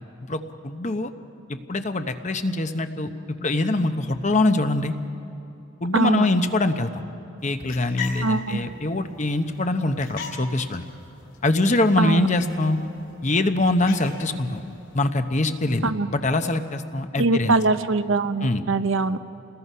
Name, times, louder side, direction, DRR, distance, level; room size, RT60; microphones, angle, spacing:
voice 1, 0.2-1.1 1.5-3.1 3.4-4.9 5.8-6.9 7.4-10.8 11.4-12.8 13.2-14.6 14.9-17.6 18.4-18.6, left 2 dB, 35° left, 8 dB, 0.9 m, -23 dB
voice 2, 5.9-6.3 8.2-8.6 12.0-12.3 15.8-16.1 17.2-19.2, right 3 dB, 70° right, 11 dB, 0.7 m, -22 dB
sound 1, 7.4-15.2, left 5 dB, 55° left, 4.4 m, -41 dB
29.0 x 20.0 x 5.6 m, 2.8 s
head